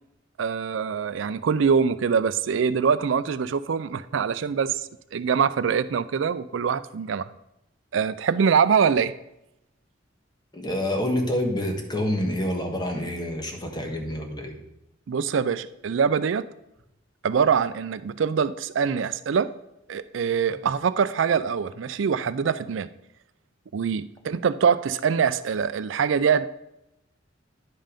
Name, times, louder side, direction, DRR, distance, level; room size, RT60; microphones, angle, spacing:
voice 1, 0.4-4.8 5.1-7.2 7.9-9.1 15.1-16.5 17.2-19.5 19.9-22.9 23.7-26.5, right 6 dB, 75° right, 15 dB, 0.4 m, -24 dB
voice 2, 10.5-14.6, left 1 dB, 25° left, 2 dB, 1.4 m, -27 dB
10.0 x 5.6 x 5.1 m, 0.85 s
head